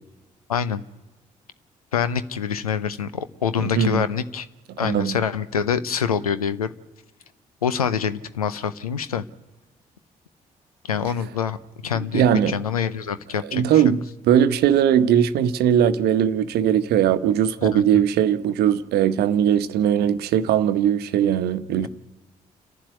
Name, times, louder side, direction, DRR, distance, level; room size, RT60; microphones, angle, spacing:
voice 1, 0.5-0.8 1.9-4.5 4.8-6.7 7.6-9.2 10.8-11.6 11.8-13.8 17.6-18.0 21.8-21.9, left 7 dB, 85° left, 0.7 m, -25 dB
voice 2, 3.6-4.0 4.7-5.2 12.1-12.5 13.5-21.9, right 9 dB, 60° right, 1.0 m, -20 dB
29.0 x 11.5 x 9.6 m
figure-of-eight pair, 40°, 18 cm